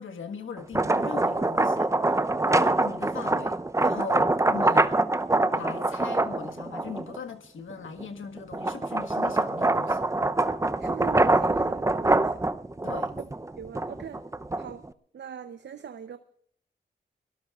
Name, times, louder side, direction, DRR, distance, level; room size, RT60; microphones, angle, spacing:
voice 1, 0.0-2.2 2.5-4.9 5.5-10.1 12.8-13.1, left 5 dB, 70° left, 1.6 m, -39 dB
sound 1, 0.6-7.2 7.7-14.9, right 2 dB, 15° right, 0.7 m, -25 dB
voice 2, 10.8-12.4 13.6-14.2 14.6-14.9 15.1-16.2, right 7 dB, 60° right, 0.8 m, -41 dB
24.0 x 18.0 x 2.4 m
cardioid pair, 55°, 21 cm